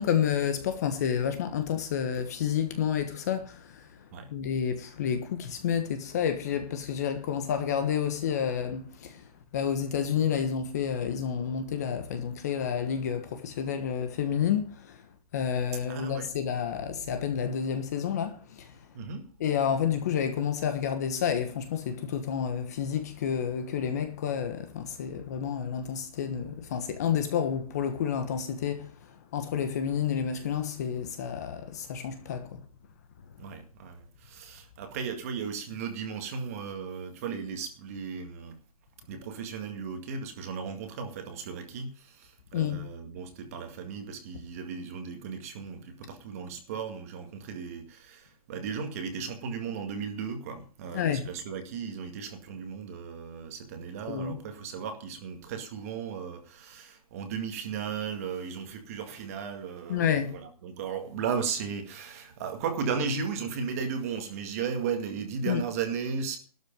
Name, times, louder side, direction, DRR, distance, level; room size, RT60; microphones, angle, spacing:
voice 1, 0.0-3.9 4.3-9.2 9.5-15.0 15.3-18.7 19.4-28.9 29.3-32.6 42.5-42.8 50.9-51.2 54.1-54.4 59.9-60.3 65.5-65.6, left 8 dB, 25° left, 1.3 m, -29 dB
voice 2, 15.9-16.3 18.9-19.3 33.4-38.6 39.1-66.4, right 6 dB, 25° right, 2.0 m, -35 dB
12.5 x 6.5 x 8.9 m
hypercardioid pair, 175°, 20 cm